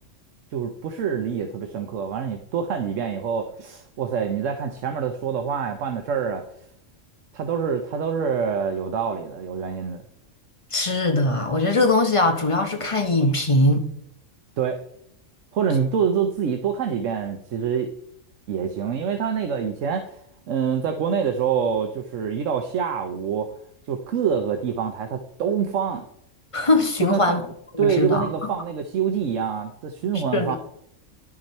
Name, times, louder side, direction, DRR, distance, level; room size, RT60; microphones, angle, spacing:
voice 1, 0.5-6.4 7.3-10.0 14.6-14.8 15.5-17.9 18.5-20.2 20.5-23.5 23.9-26.1 27.0-27.4 27.8-30.6, right 7 dB, 75° right, 6 dB, 1.1 m, -26 dB
voice 2, 10.7-13.9 26.5-27.4 27.8-28.3 30.3-30.6, left 2 dB, 25° left, 5 dB, 1.0 m, -21 dB
10.5 x 6.2 x 4.3 m, 0.71 s
omnidirectional pair, 1.3 m